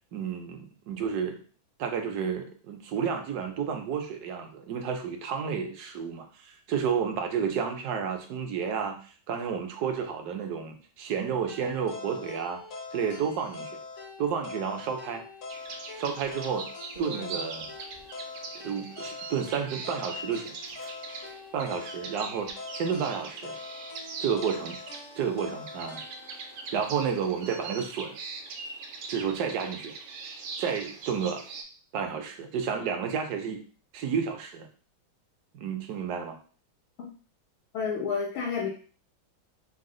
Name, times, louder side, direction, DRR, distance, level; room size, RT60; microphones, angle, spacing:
voice 1, 0.1-1.4 1.8-9.0 9.3-12.6 12.9-13.8 14.2-15.2 16.0-16.7 17.0-17.6 18.5-20.6 21.5-23.5 24.2-24.8 25.1-26.0 26.7-28.2 29.1-29.9 30.6-31.4 31.9-33.6 33.9-34.7 35.5-36.4, right 7 dB, 65° right, 4 dB, 1.0 m, -31 dB
sound 1, 11.5-27.6, left 3 dB, 65° left, 0.8 m, -43 dB
sound 2, 15.5-31.6, right 4 dB, 85° right, 1.4 m, -42 dB
sound 3, 16.9-18.1 19.0-19.5 20.1-20.2 20.4-20.9 21.2-21.3 21.8-22.5, right 2 dB, 50° right, 0.6 m, -47 dB
voice 2, 37.7-38.7, left 6 dB, 90° left, -3 dB, 1.6 m, -30 dB
4.0 x 2.0 x 3.7 m, 0.39 s
omnidirectional pair, 2.1 m